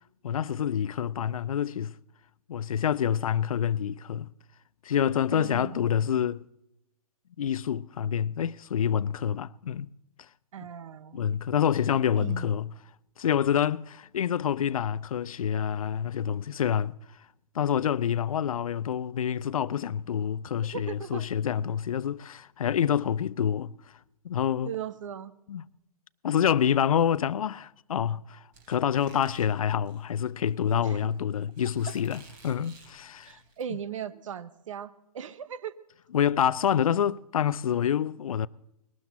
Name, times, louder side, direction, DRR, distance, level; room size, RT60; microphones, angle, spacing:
voice 1, 0.2-1.9 2.5-4.3 4.8-6.4 7.4-9.9 11.1-12.7 13.2-17.0 17.5-23.7 24.2-24.7 25.5-25.7 26.2-33.4 36.1-38.5, left 9 dB, 65° left, 0.5 m, -27 dB
voice 2, 5.3-6.0 10.5-11.4 12.2-12.5 20.7-21.3 24.6-25.3 30.8-31.0 33.3-35.7, right 9 dB, 55° right, 0.9 m, -38 dB
Squeak, 28.5-33.6, right 3 dB, 35° right, 3.4 m, -55 dB
20.5 x 12.5 x 4.1 m
figure-of-eight pair, 130°, 20 cm